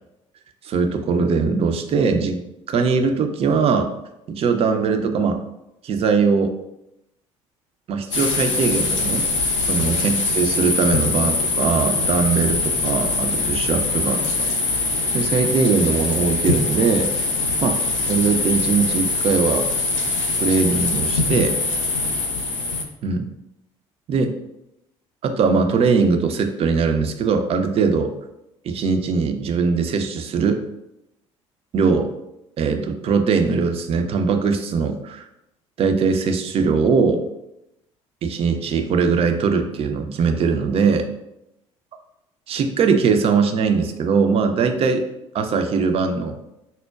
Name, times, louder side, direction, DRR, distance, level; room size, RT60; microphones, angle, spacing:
voice 1, 0.6-2.4 2.7-3.9 4.3-5.4 5.8-6.5 7.9-9.3 9.7-14.8 15.1-17.1 17.6-17.8 18.1-19.7 20.4-21.5 23.0-23.3 24.1-24.3 25.2-28.1 28.6-30.6 31.7-32.1 32.6-35.3 35.8-37.2 38.2-41.1 42.5-45.0 45.3-46.4, right 5 dB, 40° right, 6 dB, 0.4 m, -20 dB
sound 1, 8.1-22.8, left 3 dB, 80° left, 0.4 m, -23 dB
5.3 x 2.1 x 2.3 m, 0.87 s
figure-of-eight pair, 55°, 16 cm